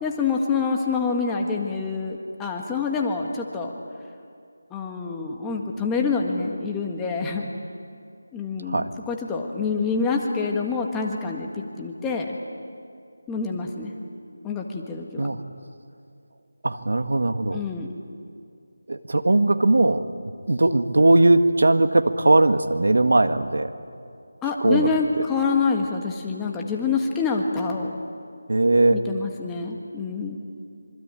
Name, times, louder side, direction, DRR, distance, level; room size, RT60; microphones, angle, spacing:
voice 1, 0.0-3.7 4.7-7.5 8.3-12.4 13.3-13.9 14.4-15.3 17.5-17.9 24.4-28.0 28.9-30.4, left 4 dB, 5° left, 0 dB, 1.6 m, -26 dB
voice 2, 16.6-17.6 18.9-20.0 20.5-23.7 24.6-24.9 28.5-29.0, right 2 dB, 75° right, 9 dB, 1.8 m, -19 dB
26.5 x 25.0 x 9.1 m, 2.3 s
figure-of-eight pair, 170°, 0 cm